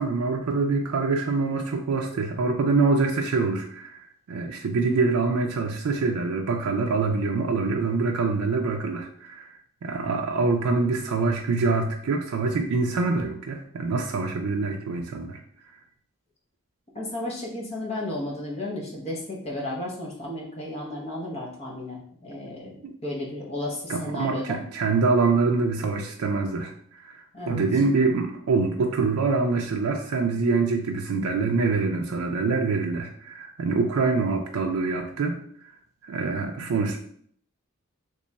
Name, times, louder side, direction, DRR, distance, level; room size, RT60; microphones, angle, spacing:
voice 1, 0.0-9.5 9.8-15.4 22.8-22.9 23.9-35.4 36.0-37.0, right 4 dB, 85° right, 2 dB, 0.4 m, -25 dB
voice 2, 16.9-22.7 23.0-24.6 27.3-27.6, left 1 dB, 30° left, -3 dB, 0.8 m, -33 dB
3.0 x 2.3 x 4.0 m, 0.63 s
head